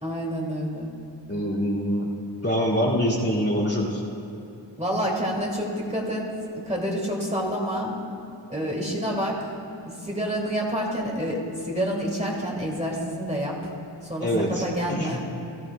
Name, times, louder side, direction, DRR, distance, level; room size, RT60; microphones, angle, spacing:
voice 1, 0.0-0.9 4.8-8.0 8.5-9.4 10.0-13.6 14.0-14.3 14.6-15.2, equal, 15° right, -3 dB, 2.5 m, -28 dB
voice 2, 1.3-2.1 2.4-4.0 14.2-15.3, equal, 30° left, -7 dB, 2.5 m, -25 dB
19.0 x 13.5 x 2.3 m, 2.9 s
wide cardioid pair, 65°, 45 cm